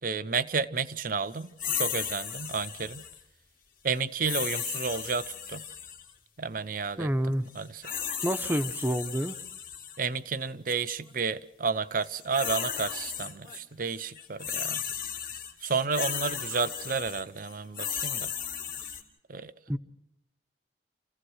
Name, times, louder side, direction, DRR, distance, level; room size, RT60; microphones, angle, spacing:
voice 1, 0.0-3.1 3.8-5.7 6.4-7.9 10.0-14.8 15.6-18.3 19.3-19.5, right 5 dB, 50° right, 13 dB, 0.8 m, -31 dB
sound 1, 1.6-3.2 4.2-6.1 7.5-10.0 10.7-10.9 12.0-13.6 13.9-19.0, left 8 dB, 50° left, 2.5 m, -35 dB
voice 2, 7.0-7.4 8.2-9.3 19.7-19.8, right 1 dB, 10° right, 8 dB, 0.8 m, -28 dB
28.0 x 16.0 x 6.3 m, 0.89 s
head